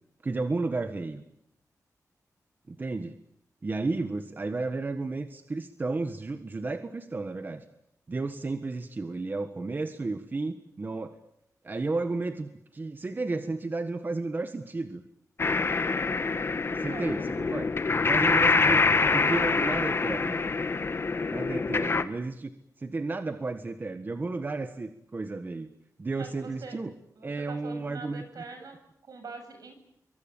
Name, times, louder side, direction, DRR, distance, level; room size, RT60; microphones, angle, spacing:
voice 1, 0.2-1.2 2.7-3.2 3.6-7.6 8.1-11.2 11.6-15.0 16.5-17.7 18.0-18.8 19.1-20.4 21.3-22.5 22.8-25.7 26.0-26.9 27.2-28.2, right 3 dB, 30° right, 8 dB, 1.5 m, -33 dB
sound 1, 15.4-22.0, left 4 dB, 40° left, 1.5 m, -25 dB
voice 2, 16.7-17.5 18.4-18.7 26.1-26.8 27.2-29.7, right 4 dB, 75° right, 7 dB, 7.6 m, -45 dB
25.5 x 24.0 x 8.9 m, 0.76 s
wide cardioid pair, 165°, 6 cm